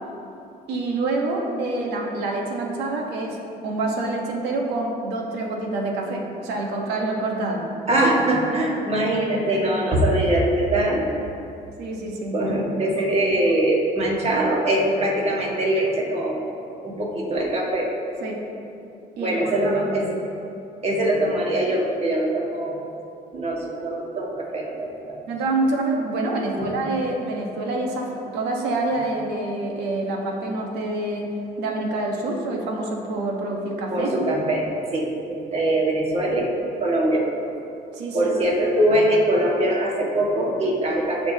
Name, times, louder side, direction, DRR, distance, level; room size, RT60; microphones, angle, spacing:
voice 1, 0.7-3.4 3.6-7.7 11.8-12.4 18.2-18.4 19.2-20.1 25.3-31.3 31.6-34.3 37.7-38.3, right 2 dB, 90° right, 0 dB, 1.4 m, -27 dB
voice 2, 7.9-11.1 12.3-16.4 16.8-17.9 19.2-20.1 20.8-22.8 23.3-25.2 26.5-26.7 33.9-34.7 34.9-36.5 36.8-37.3 38.1-41.3, right 1 dB, 40° right, -2 dB, 1.9 m, -22 dB
14.5 x 5.2 x 2.9 m, 2.6 s
cardioid pair, 110°, 17 cm